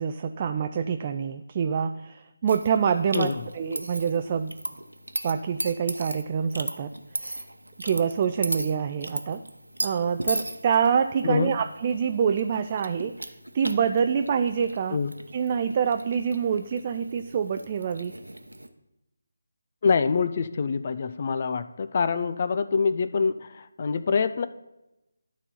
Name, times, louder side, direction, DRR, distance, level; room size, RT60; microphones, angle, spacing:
voice 1, 0.0-4.5 5.2-7.4 7.8-9.4 9.8-15.0 15.3-18.1, right 7 dB, 30° right, 8 dB, 0.4 m, -26 dB
sound 1, 2.5-18.7, right 1 dB, 85° right, 1.0 m, -37 dB
voice 2, 19.8-24.5, left 5 dB, 40° left, 12 dB, 0.4 m, -25 dB
12.0 x 4.1 x 5.5 m, 0.95 s
figure-of-eight pair, 155°, 0 cm